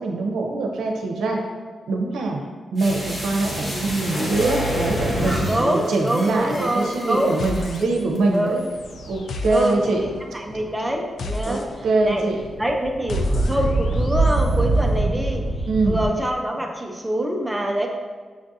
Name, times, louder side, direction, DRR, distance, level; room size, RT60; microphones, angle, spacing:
voice 1, 0.0-1.4 1.9-2.4 2.7-8.6 9.1-10.0 11.5-12.4 15.7-16.0, right 3 dB, 90° right, 1 dB, 0.6 m, -23 dB
sound 1, 2.8-7.8 8.1-8.2, equal, 25° left, 1.0 m, -28 dB
voice 2, 5.5-7.4 7.8-7.9 8.3-8.6 9.4-11.6 12.0-12.3 12.6-15.5 15.8-17.9, right 1 dB, 10° right, 1 dB, 0.5 m, -25 dB
sound 2, 7.4-8.3 8.6-14.6, left 2 dB, 70° left, 0.4 m, -35 dB
sound 3, 8.0-8.2 8.8-9.3 9.8-11.0 11.3-16.1, right 2 dB, 55° right, 0.9 m, -24 dB
6.2 x 2.5 x 2.7 m, 1.5 s
cardioid pair, 105°, 0 cm